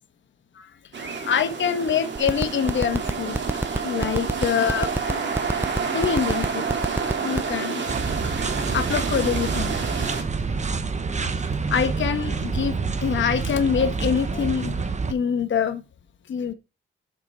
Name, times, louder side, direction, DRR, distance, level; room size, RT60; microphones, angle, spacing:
sound 1, 0.9-10.2, right 5 dB, 60° right, 2.4 m, -29 dB
voice 1, 1.2-3.4 3.8-4.9 5.2-5.3 5.9-6.6 7.2-7.8 8.7-9.7 11.7-12.8 13.0-14.8 15.1-15.8 16.3-16.5, left 7 dB, 65° left, 1.2 m, -24 dB
sound 2, 2.2-7.5, right 2 dB, 10° right, 0.6 m, -24 dB
sound 3, 7.9-15.1, right 4 dB, 35° right, 1.2 m, -27 dB
7.4 x 4.5 x 5.4 m
cardioid pair, 80°, 21 cm